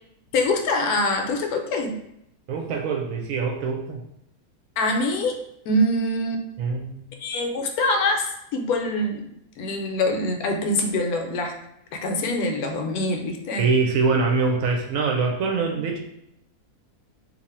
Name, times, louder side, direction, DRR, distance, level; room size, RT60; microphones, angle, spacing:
voice 1, 0.3-1.9 4.8-5.4 5.7-6.4 7.2-9.3 9.6-11.6 11.9-13.7, left 1 dB, 75° left, 4 dB, 1.0 m, -24 dB
voice 2, 2.5-4.0 6.6-7.1 13.6-16.0, right 4 dB, 70° right, 2 dB, 0.9 m, -24 dB
2.7 x 2.6 x 4.2 m, 0.79 s
omnidirectional pair, 1.6 m